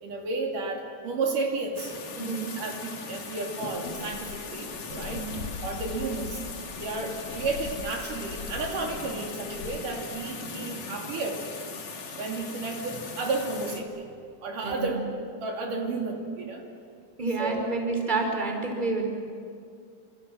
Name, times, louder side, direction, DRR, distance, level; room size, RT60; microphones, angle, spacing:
voice 1, 0.0-2.0 2.6-5.3 5.6-6.4 6.8-11.4 12.2-14.1 14.4-15.1 15.4-16.7 17.4-17.8, right 3 dB, 80° right, 0 dB, 4.5 m, -32 dB
sound 1, 1.8-13.8, left 4 dB, 60° left, 3.6 m, -39 dB
voice 2, 2.1-2.6 5.1-5.4 14.6-14.9 17.2-19.0, right 3 dB, 15° right, 1 dB, 4.7 m, -29 dB
Dog / Bird, 3.7-10.0, left 6 dB, 75° left, 2.6 m, -42 dB
28.0 x 27.5 x 7.7 m, 2.3 s
omnidirectional pair, 3.7 m